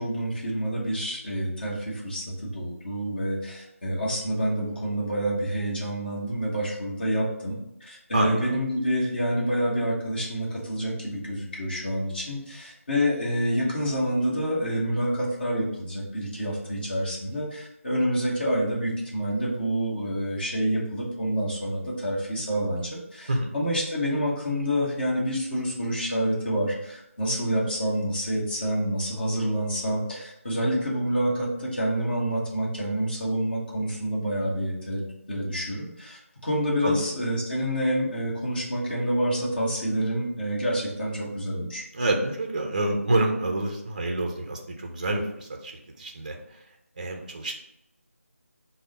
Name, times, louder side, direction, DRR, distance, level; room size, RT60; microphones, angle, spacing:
voice 1, 0.0-7.6 7.8-35.0 35.3-41.8, equal, 40° left, -4 dB, 1.1 m, -28 dB
voice 2, 8.1-8.5 23.3-23.5 36.8-37.0 41.9-46.6 47.0-47.5, right 2 dB, 30° right, 2 dB, 0.4 m, -28 dB
3.5 x 2.0 x 3.8 m, 0.82 s
figure-of-eight pair, 170°, 8 cm